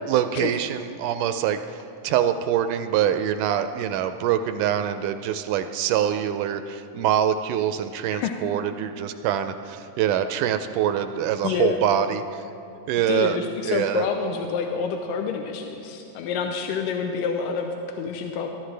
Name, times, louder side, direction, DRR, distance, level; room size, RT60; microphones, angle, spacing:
voice 1, 0.1-12.4 12.9-13.4 13.7-14.1, right 10 dB, 80° right, 9 dB, 1.9 m, -24 dB
voice 2, 11.4-11.8 13.1-18.5, left 6 dB, 85° left, 3 dB, 2.4 m, -28 dB
22.0 x 12.0 x 3.3 m, 2.8 s
omnidirectional pair, 3.9 m